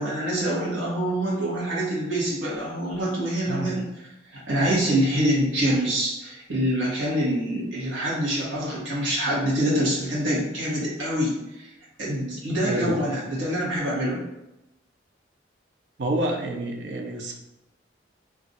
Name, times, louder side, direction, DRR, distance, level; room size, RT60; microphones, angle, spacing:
voice 1, 0.0-3.8 4.3-11.7 12.0-14.2, right 1 dB, 90° right, -6 dB, 1.0 m, -25 dB
voice 2, 12.6-13.2 16.0-17.3, right 1 dB, 65° right, 1 dB, 0.5 m, -28 dB
2.4 x 2.3 x 3.9 m, 0.93 s
head